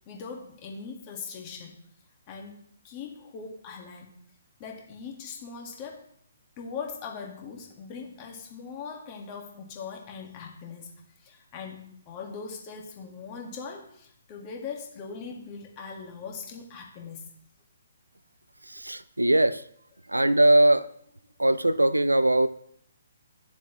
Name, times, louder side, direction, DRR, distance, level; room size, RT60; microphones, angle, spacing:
voice 1, 0.1-1.8 2.3-4.2 4.6-6.0 6.6-17.3, left 5 dB, 30° left, 1 dB, 1.8 m, -40 dB
voice 2, 18.9-19.6 20.1-20.8 21.4-22.5, right 1 dB, 80° right, 15 dB, 0.4 m, -20 dB
10.5 x 7.1 x 3.1 m, 0.67 s
figure-of-eight pair, 130°, 0 cm